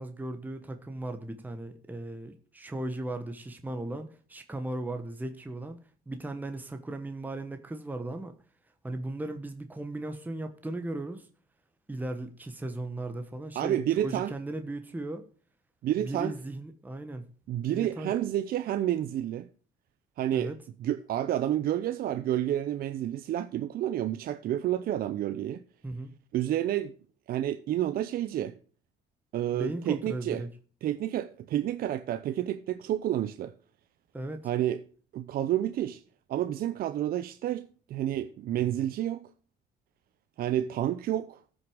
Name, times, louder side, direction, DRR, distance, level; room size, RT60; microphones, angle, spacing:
voice 1, 0.0-5.8 6.1-8.3 8.8-11.3 11.9-15.2 16.0-17.3 17.7-18.1 20.3-20.6 25.8-26.1 29.5-30.5 34.1-34.4, right 2 dB, 10° right, 1.2 m, -37 dB
voice 2, 13.6-14.3 15.8-16.4 17.5-19.5 20.2-20.5 20.8-25.6 26.3-27.0 27.3-28.6 29.3-30.4 30.8-33.5 34.4-34.8 35.1-36.0 36.3-39.3 40.4-41.4, right 12 dB, 60° right, 0.7 m, -30 dB
14.0 x 6.3 x 4.8 m
cardioid pair, 110°, 17 cm